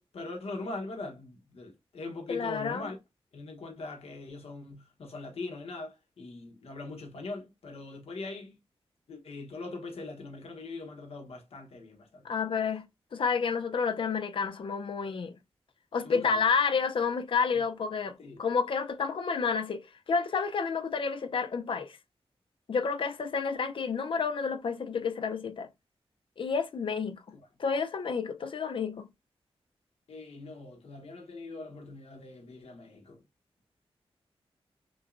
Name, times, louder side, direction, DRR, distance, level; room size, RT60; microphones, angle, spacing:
voice 1, 0.0-3.0 3.3-8.6 9.1-12.4 16.0-16.4 18.2-18.4 27.3-27.4 30.1-33.2, left 3 dB, 80° left, 1.1 m, -41 dB
voice 2, 2.3-2.9 12.2-12.8 13.1-15.3 15.9-22.0 22.7-25.7 26.4-27.2 27.6-29.1, left 5 dB, 60° left, 0.5 m, -30 dB
6.1 x 2.2 x 2.5 m
wide cardioid pair, 125°, 10 cm